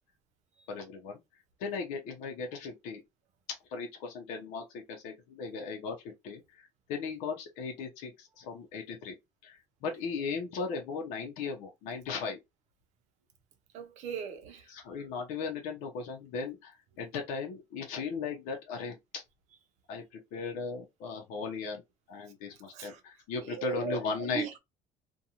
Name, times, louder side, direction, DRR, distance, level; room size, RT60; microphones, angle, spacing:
voice 1, 0.7-1.2 1.6-3.0 3.7-6.6 6.9-9.1 9.4-12.4 14.7-19.2 19.9-20.0 20.3-21.8 22.1-24.4, left 5 dB, 90° left, 0.7 m, -37 dB
voice 2, 13.7-14.7 22.5-23.0 23.4-24.6, right 8 dB, 65° right, 0.6 m, -39 dB
2.5 x 2.3 x 2.8 m
cardioid pair, 155°, 13 cm